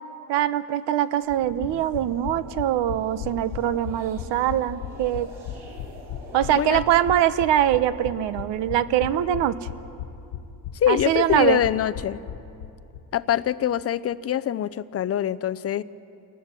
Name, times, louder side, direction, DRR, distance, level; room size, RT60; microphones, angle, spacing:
voice 1, 0.3-5.3 6.3-9.5 10.9-11.6, right 11 dB, 75° right, 13 dB, 1.0 m, -23 dB
sound 1, 1.3-13.0 13.3-13.4 13.6-13.7, left 10 dB, 70° left, 1.5 m, -37 dB
sound 2, 1.5-6.7, right 2 dB, 35° right, 5.1 m, -46 dB
voice 2, 10.7-12.2 13.1-15.8, left 11 dB, 35° left, 16 dB, 0.5 m, -24 dB
27.5 x 19.0 x 7.5 m, 2.8 s
cardioid pair, 145°, 44 cm